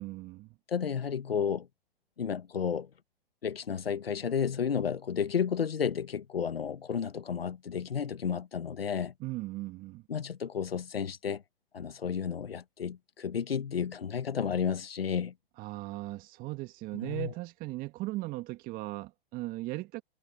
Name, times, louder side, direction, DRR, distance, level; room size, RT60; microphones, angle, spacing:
voice 1, 0.0-0.5 9.2-10.1 15.6-20.0, right 19 dB, 30° right, 1.8 m, -38 dB
voice 2, 0.7-1.7 2.2-2.9 3.4-9.1 10.1-11.4 11.7-15.3 16.9-17.3, left 7 dB, 80° left, 1.6 m, -32 dB
hypercardioid pair, 120°, 29 cm